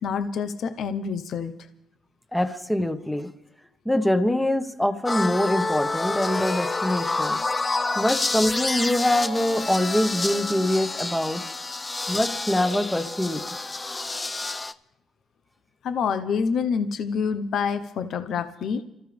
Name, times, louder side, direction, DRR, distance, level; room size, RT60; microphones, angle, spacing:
voice 1, 0.0-1.5 15.8-18.8, left 6 dB, 70° left, 8 dB, 1.0 m, -27 dB
voice 2, 2.3-3.3 3.8-7.4 7.9-11.4 12.1-13.4, left 1 dB, 5° left, 6 dB, 1.3 m, -24 dB
sound 1, 5.1-14.7, left 3 dB, 20° left, 0.7 m, -28 dB
29.0 x 14.0 x 3.5 m, 0.85 s
cardioid pair, 90°, 0 cm